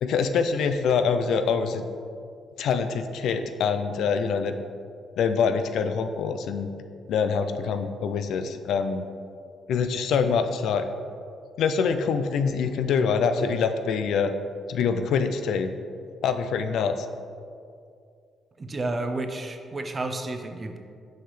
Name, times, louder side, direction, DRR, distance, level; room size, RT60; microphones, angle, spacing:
voice 1, 0.0-1.8 2.6-4.5 5.2-6.7 7.1-9.1 9.7-10.9 11.6-14.3 14.7-15.7 16.2-17.1, left 6 dB, 75° left, 8 dB, 0.3 m, -25 dB
voice 2, 18.6-20.8, right 2 dB, 30° right, 5 dB, 0.5 m, -31 dB
6.2 x 4.6 x 3.2 m, 2.3 s
cardioid pair, 90°, 0 cm